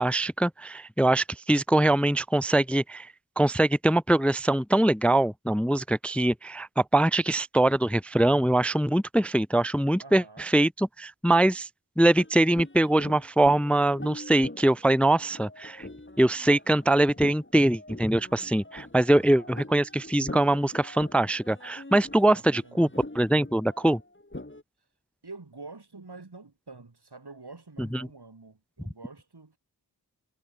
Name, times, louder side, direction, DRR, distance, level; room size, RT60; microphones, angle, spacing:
voice 1, 0.0-11.7 12.0-15.9 16.2-22.9 23.1-24.0 27.8-28.1, right 1 dB, 5° left, 0.4 m, -23 dB
voice 2, 10.0-10.5 19.1-19.5 22.3-22.9 25.2-29.6, right 3 dB, 90° right, 6.0 m, -47 dB
sound 1, 12.2-24.6, left 1 dB, 30° left, 4.2 m, -44 dB
wide cardioid pair, 50°, 38 cm